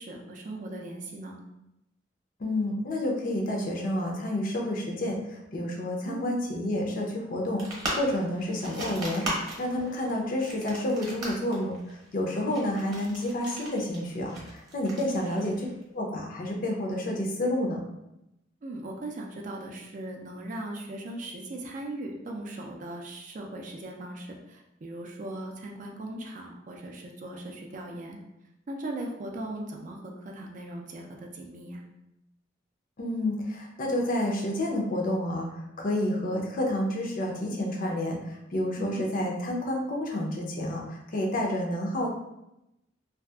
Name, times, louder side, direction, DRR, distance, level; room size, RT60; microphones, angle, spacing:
voice 1, 0.0-1.4 6.0-6.3 15.1-15.3 18.6-28.2 28.7-31.8 38.8-39.1, right 1 dB, 45° right, 1 dB, 0.4 m, -38 dB
voice 2, 2.4-15.5 15.9-17.8 33.0-35.5 35.8-42.1, left 1 dB, 45° left, 1 dB, 0.5 m, -29 dB
sound 1, 7.6-15.8, right 1 dB, 25° right, 0.9 m, -38 dB
2.7 x 2.4 x 2.3 m, 0.88 s
head